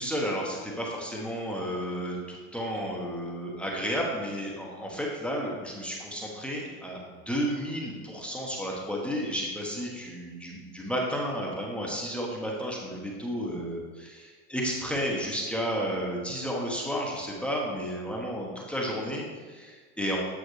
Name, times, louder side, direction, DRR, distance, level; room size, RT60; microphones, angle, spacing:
voice 1, 0.0-7.0 7.3-20.2, equal, 5° left, -3 dB, 1.1 m, -32 dB
9.1 x 5.8 x 3.2 m, 1.4 s
supercardioid pair, 120°, 40 cm